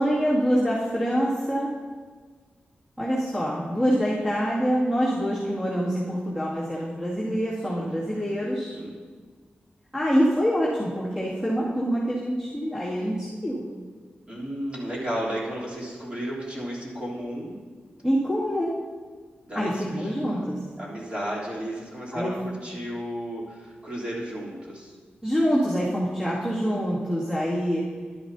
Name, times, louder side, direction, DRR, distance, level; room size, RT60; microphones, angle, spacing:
voice 1, 0.0-1.7 3.0-8.7 9.9-13.7 18.0-18.7 19.5-20.6 22.1-22.4 25.2-27.8, equal, 15° right, -10 dB, 2.3 m, -25 dB
voice 2, 5.1-5.6 7.8-8.3 8.7-8.9 14.3-17.5 19.4-20.4 20.8-24.9, equal, 30° right, -6 dB, 3.3 m, -34 dB
12.0 x 11.0 x 2.8 m, 1.5 s
wide cardioid pair, 95°, 4 cm